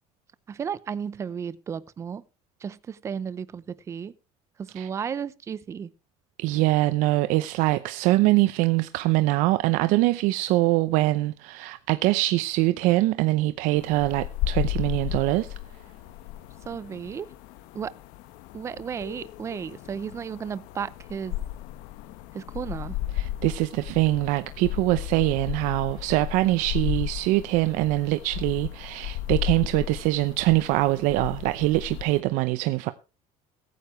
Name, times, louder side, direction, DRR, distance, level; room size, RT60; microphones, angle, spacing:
voice 1, 0.5-2.2 2.6-4.2 4.6-5.9 16.7-17.3 17.7-17.9 18.5-21.4 22.3-23.0, right 7 dB, 20° right, 0.6 m, -34 dB
voice 2, 6.4-15.5 23.2-32.9, right 18 dB, 70° right, 0.8 m, -23 dB
sound 1, 13.8-32.2, left 14 dB, 90° left, 1.3 m, -34 dB
22.0 x 9.5 x 3.2 m
cardioid pair, 175°, 13 cm